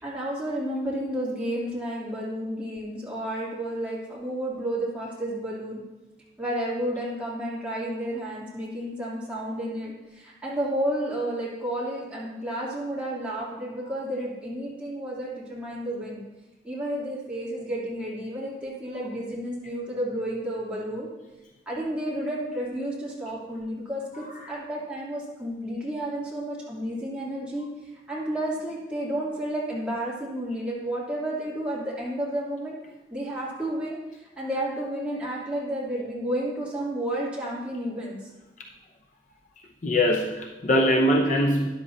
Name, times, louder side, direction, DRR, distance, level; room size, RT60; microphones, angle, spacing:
voice 1, 0.0-5.8 6.4-16.2 16.6-21.1 21.7-27.7 28.1-32.8 33.1-34.0 34.4-38.2, right 1 dB, 5° right, -8 dB, 3.0 m, -31 dB
voice 2, 39.8-41.7, equal, 45° left, 2 dB, 0.8 m, -22 dB
12.5 x 11.0 x 2.8 m, 1.1 s
head